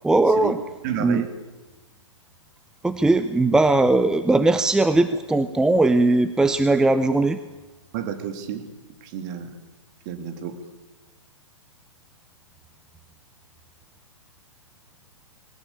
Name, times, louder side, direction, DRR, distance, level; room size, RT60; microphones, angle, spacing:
voice 1, 0.0-0.6 1.0-1.2 2.8-7.4, right 2 dB, 5° right, 11 dB, 0.7 m, -19 dB
voice 2, 0.8-1.3 7.9-8.6 9.0-9.5 10.0-10.6, right 9 dB, 40° right, 8 dB, 2.9 m, -31 dB
21.0 x 18.5 x 8.6 m, 1.1 s
figure-of-eight pair, 115°, 16 cm